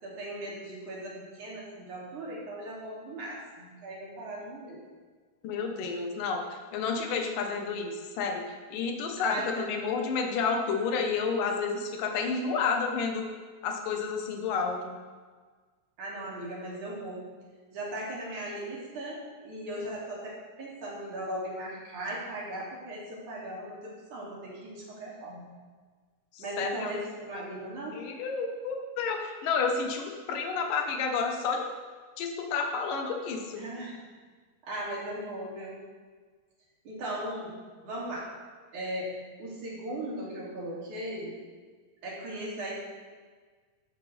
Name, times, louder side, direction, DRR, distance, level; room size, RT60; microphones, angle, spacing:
voice 1, 0.0-4.8 9.2-9.7 16.0-17.3 17.7-25.5 26.4-28.0 33.6-34.0 34.6-35.8 36.8-37.6 37.8-38.3 38.7-39.1 39.4-41.3 42.0-42.7, right 1 dB, 50° right, -5 dB, 4.1 m, -38 dB
voice 2, 5.4-6.4 6.7-8.5 8.7-13.3 13.6-15.0 26.3-26.9 27.3-27.4 27.9-31.7 32.2-33.6, left 5 dB, 65° left, 3 dB, 2.6 m, -30 dB
14.5 x 12.0 x 3.6 m, 1.5 s
omnidirectional pair, 4.8 m